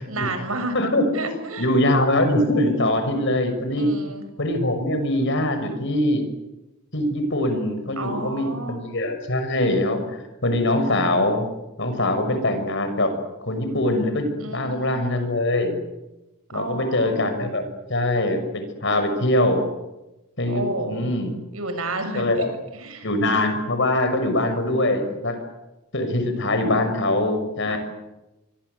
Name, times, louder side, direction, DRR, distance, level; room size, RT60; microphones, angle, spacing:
voice 1, 0.1-0.8 1.1-1.7 3.8-4.2 8.0-8.8 14.4-15.3 16.5-17.4 20.5-21.0 21.5-22.2 22.7-23.1 27.7-27.8, right 2 dB, 85° right, 7 dB, 6.9 m, -31 dB
voice 2, 0.7-1.1 1.6-3.9 4.4-6.2 6.9-11.5 11.8-13.1 13.5-15.8 16.5-19.6 20.4-21.3 22.1-22.5 23.0-25.4 25.9-27.8, left 1 dB, 60° left, 8 dB, 6.2 m, -23 dB
25.5 x 25.0 x 8.2 m, 1.0 s
head